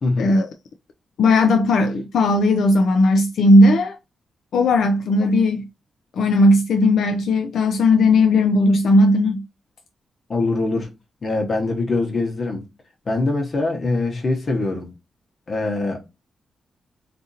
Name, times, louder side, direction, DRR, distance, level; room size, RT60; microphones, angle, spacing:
voice 1, 0.0-0.4 5.4-5.5 10.3-10.9 11.2-12.7 13.1-14.9 15.5-16.1, left 2 dB, 45° left, 1.0 m, -23 dB
voice 2, 1.2-4.0 4.5-5.6 6.2-9.4, left 2 dB, 85° left, 0.3 m, -16 dB
2.8 x 2.6 x 2.5 m
cardioid pair, 90°, 0 cm